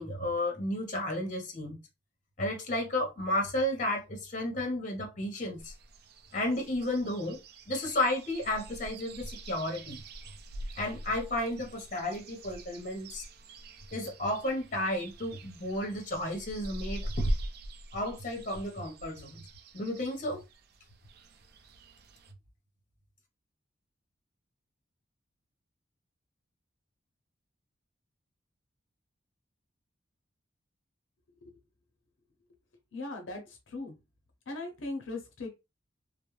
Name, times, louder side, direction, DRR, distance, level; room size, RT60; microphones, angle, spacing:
voice 1, 0.0-1.8 2.4-5.7 6.3-7.4 7.7-10.0 10.8-13.2 13.9-17.3 17.9-19.4 19.7-20.4, left 1 dB, 40° left, 0.8 m, -32 dB
sound 1, 5.6-22.3, right 1 dB, 55° right, 0.3 m, -42 dB
voice 2, 32.9-33.9 34.5-35.5, left 2 dB, 80° left, 0.6 m, -39 dB
2.3 x 2.0 x 3.0 m
head